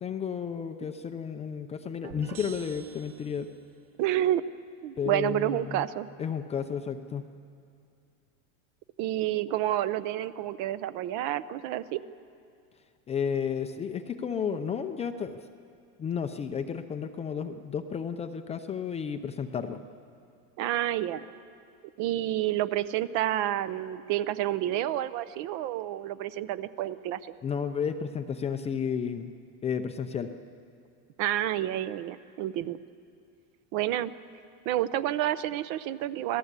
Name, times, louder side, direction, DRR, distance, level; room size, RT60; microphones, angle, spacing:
voice 1, 0.0-3.5 5.0-5.9 6.2-7.3 13.1-15.4 16.0-19.8 27.4-29.3 29.6-30.3, left 7 dB, 15° left, 7 dB, 0.5 m, -32 dB
sound 1, 2.0-3.7, right 7 dB, 75° right, 2.7 m, -46 dB
voice 2, 4.0-4.4 4.8-6.1 9.0-12.0 20.6-21.2 22.0-27.3 31.2-32.8 33.7-34.1 34.7-36.4, right 13 dB, 45° right, 15 dB, 0.7 m, -29 dB
26.5 x 17.5 x 8.2 m, 2.4 s
supercardioid pair, 155°, 41 cm